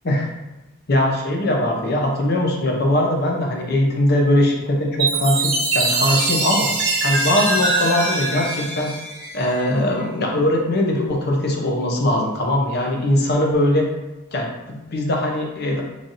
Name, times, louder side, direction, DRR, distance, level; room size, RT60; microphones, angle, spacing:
voice 1, 0.9-6.7 7.0-8.9 9.3-13.9 14.3-15.8, left 1 dB, 55° left, 0 dB, 0.7 m, -20 dB
Chime, 5.0-9.7, right 3 dB, 60° right, 1.0 m, -22 dB
3.2 x 2.6 x 4.0 m, 1.0 s
head